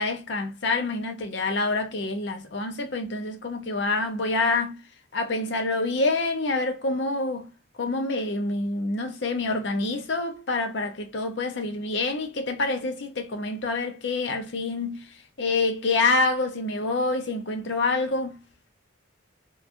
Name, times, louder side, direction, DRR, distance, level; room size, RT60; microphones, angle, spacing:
voice 1, 0.0-4.8 5.1-7.5 7.8-18.4, left 3 dB, 60° left, 0.6 m, -27 dB
2.9 x 2.3 x 2.5 m
head